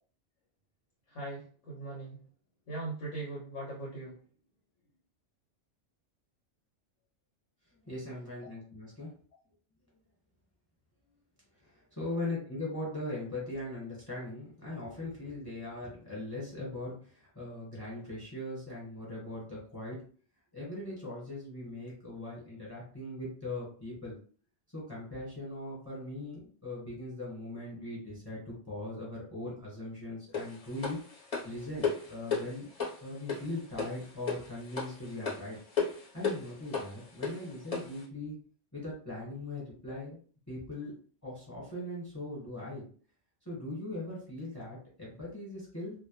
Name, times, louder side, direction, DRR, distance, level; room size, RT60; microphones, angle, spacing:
voice 1, 1.1-2.2 2.7-4.2, right 2 dB, 85° left, -3 dB, 1.0 m, -40 dB
voice 2, 7.9-9.1 11.6-20.0 20.5-24.2 24.7-31.0 31.4-32.7 33.0-35.6 36.1-38.4 38.7-40.2 40.5-40.9 41.2-42.9 43.4-45.9, left 2 dB, 15° left, -5 dB, 1.0 m, -40 dB
sound 1, 30.3-38.0, left 5 dB, 35° left, 0.7 m, -36 dB
2.1 x 2.1 x 2.9 m, 0.43 s
omnidirectional pair, 1.2 m